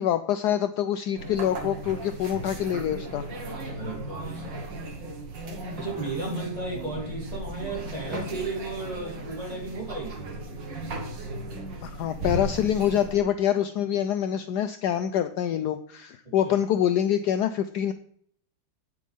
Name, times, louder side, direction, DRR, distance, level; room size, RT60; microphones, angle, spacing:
voice 1, 0.0-3.2 11.8-17.9, left 10 dB, 70° left, 10 dB, 1.0 m, -25 dB
sound 1, 1.2-13.2, right 1 dB, 70° right, 2.3 m, -36 dB
voice 2, 3.7-4.7 5.7-10.3 16.2-16.5, right 3 dB, 20° right, -3 dB, 3.4 m, -34 dB
9.3 x 8.3 x 3.5 m, 0.62 s
omnidirectional pair, 2.0 m